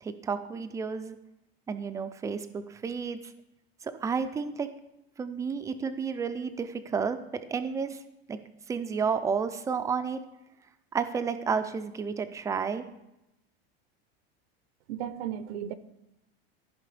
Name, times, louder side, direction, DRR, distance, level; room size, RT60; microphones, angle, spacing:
voice 1, 0.0-1.2 1.7-3.2 3.8-4.7 5.2-8.0 8.3-8.4 8.7-10.2 10.9-12.8, right 5 dB, 10° right, 10 dB, 0.3 m, -31 dB
voice 2, 14.9-15.7, right 10 dB, 75° right, 12 dB, 0.7 m, -35 dB
14.0 x 5.1 x 3.3 m, 0.89 s
supercardioid pair, 140°, 31 cm